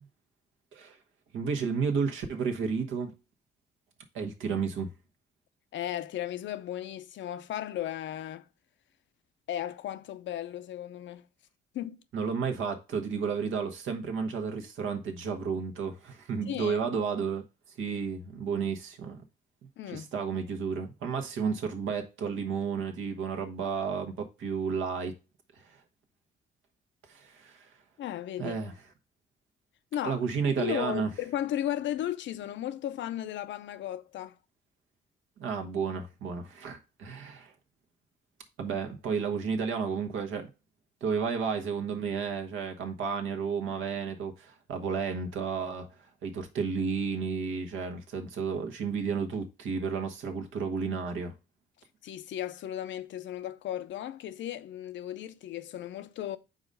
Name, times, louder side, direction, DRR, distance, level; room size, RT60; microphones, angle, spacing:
voice 1, 1.3-3.1 4.1-4.9 12.1-17.4 17.8-19.2 19.9-25.1 25.6-25.8 27.1-27.7 28.4-28.7 30.0-31.1 35.4-37.5 38.6-40.5 41.0-45.9 46.2-51.3, right 5 dB, 80° right, 1.3 m, -32 dB
voice 2, 5.7-8.5 9.5-11.3 11.7-12.0 16.5-16.8 19.8-20.1 28.0-28.6 29.9-30.2 30.6-34.3 52.0-56.4, left 11 dB, 70° left, 0.6 m, -35 dB
4.9 x 4.0 x 5.3 m
cardioid pair, 90°, 20 cm